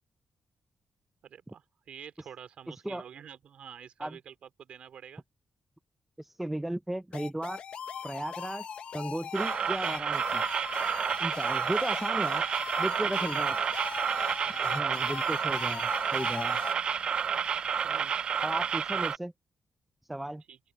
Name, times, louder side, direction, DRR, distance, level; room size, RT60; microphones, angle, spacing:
voice 1, 1.2-5.2 13.0-13.5 14.4-15.0 17.8-18.1 18.9-19.0 20.5-20.6, right 8 dB, 75° right, 2.5 m, -48 dB
voice 2, 2.7-3.0 4.0-4.2 6.2-7.6 8.0-8.7 8.9-10.4 11.2-12.4 12.8-13.6 14.6-16.6 18.4-19.3 20.1-20.4, right 1 dB, 10° right, 0.6 m, -35 dB
sound 1, 7.1-16.7, left 7 dB, 65° left, 1.0 m, -40 dB
sound 2, 9.3-19.2, right 7 dB, 55° right, 0.4 m, -30 dB
open air
cardioid pair, 115°, 2 cm